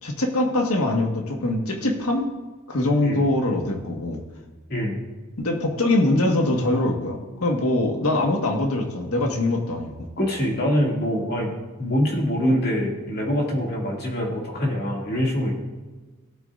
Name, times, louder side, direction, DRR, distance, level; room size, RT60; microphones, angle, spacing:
voice 1, 0.0-2.3 2.7-4.2 5.4-9.9, left 2 dB, 85° left, 2 dB, 1.6 m, -23 dB
voice 2, 10.2-15.5, equal, 50° left, -2 dB, 2.4 m, -24 dB
17.5 x 8.2 x 2.5 m, 1.3 s
head